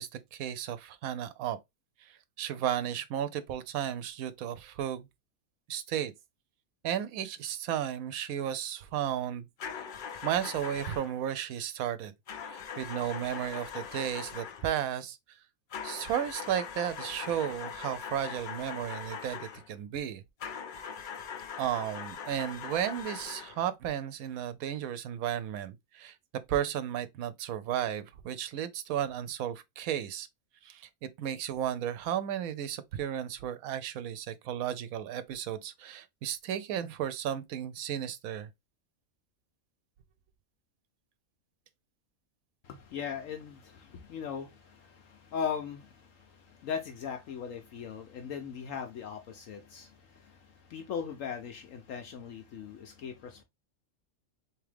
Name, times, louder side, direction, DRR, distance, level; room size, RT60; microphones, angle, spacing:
voice 1, 0.0-1.6 2.0-5.1 5.7-6.1 6.8-9.5 9.7-9.9 10.2-12.1 12.5-15.2 15.8-20.2 21.6-26.2 26.5-30.3 30.6-38.5, right 10 dB, 85° right, 1.0 m, -34 dB
sound 1, 9.6-11.2 12.3-14.7 15.7-19.7 20.4-23.6, left 6 dB, 90° left, 0.4 m, -41 dB
voice 2, 42.6-53.4, left 7 dB, 70° left, 1.0 m, -39 dB
3.6 x 3.0 x 3.3 m
omnidirectional pair, 1.5 m